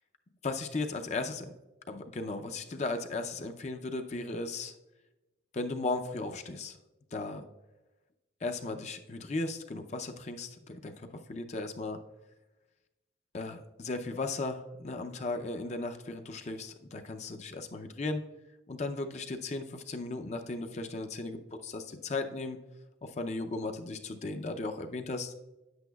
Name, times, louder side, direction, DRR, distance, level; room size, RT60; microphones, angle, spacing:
voice 1, 0.4-1.4 1.9-4.7 5.5-6.8 7.1-7.4 8.4-12.0 13.3-18.2 18.7-22.6 23.0-25.3, left 3 dB, 35° left, 6 dB, 0.4 m, -36 dB
9.8 x 8.1 x 2.3 m, 1.0 s
head